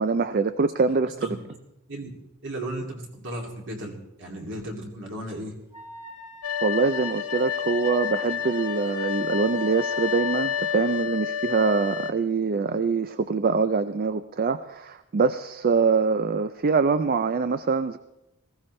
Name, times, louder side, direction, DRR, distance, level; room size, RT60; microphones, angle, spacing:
voice 1, 0.0-1.4 6.6-18.0, right 4 dB, 45° right, 12 dB, 0.4 m, -24 dB
voice 2, 2.4-5.5, right 1 dB, 60° right, 1 dB, 2.6 m, -35 dB
Wind instrument woodwind instrument, 5.7-10.6, left 1 dB, 10° right, 1.6 m, -42 dB
sound 1, 6.4-12.1, left 8 dB, 70° left, 0.8 m, -29 dB
19.5 x 16.0 x 3.2 m, 0.90 s
head